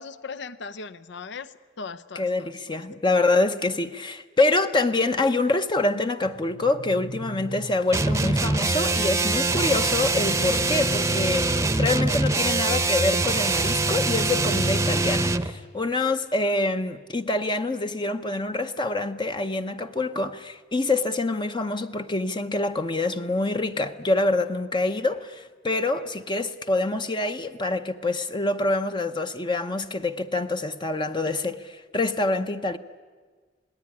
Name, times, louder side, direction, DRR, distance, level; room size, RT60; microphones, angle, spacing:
voice 1, 0.0-2.8, left 4 dB, 65° left, 0.7 m, -39 dB
voice 2, 2.1-32.8, left 2 dB, 25° left, 0.8 m, -26 dB
sound 1, 6.2-8.2 9.9-12.0 13.6-15.6, right 2 dB, 50° right, 0.8 m, -40 dB
sound 2, 7.9-15.5, right 3 dB, 15° right, 0.8 m, -23 dB
27.5 x 19.0 x 9.9 m
head